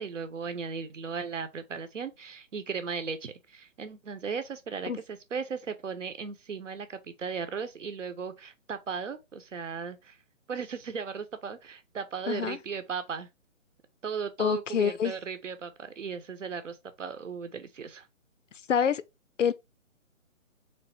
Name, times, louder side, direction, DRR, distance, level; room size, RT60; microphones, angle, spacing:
voice 1, 0.0-10.2 10.5-13.3 14.0-18.1, right 6 dB, 65° right, 1.0 m, -36 dB
voice 2, 12.3-12.6 14.4-15.1 18.7-19.0 19.4-19.5, left 7 dB, 65° left, 0.5 m, -26 dB
3.4 x 3.4 x 4.3 m
hypercardioid pair, 160°, 41 cm